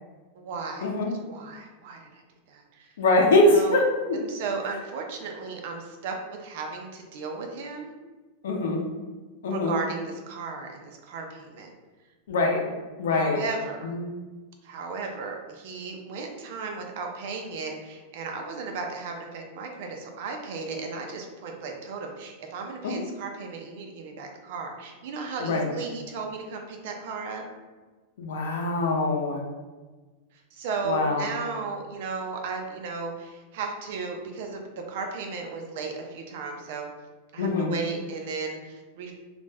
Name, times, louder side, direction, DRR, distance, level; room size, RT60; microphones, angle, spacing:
voice 1, 0.4-0.9 1.2-2.2 2.5-2.9 3.5-3.8 4.1-7.9 9.5-11.7 13.1-14.0 14.6-27.4 30.5-34.6 34.9-36.9 37.3-39.1, right 4 dB, 55° right, 3 dB, 0.4 m, -35 dB
voice 2, 3.0-4.2 8.4-8.8 9.4-9.8 12.3-12.6 13.0-13.4 13.9-14.1 22.8-23.0 25.4-25.7 28.2-29.4 30.8-31.3 37.4-37.7, left 2 dB, 85° left, 1 dB, 0.6 m, -23 dB
2.4 x 2.1 x 3.3 m, 1.3 s
supercardioid pair, 165°, 0 cm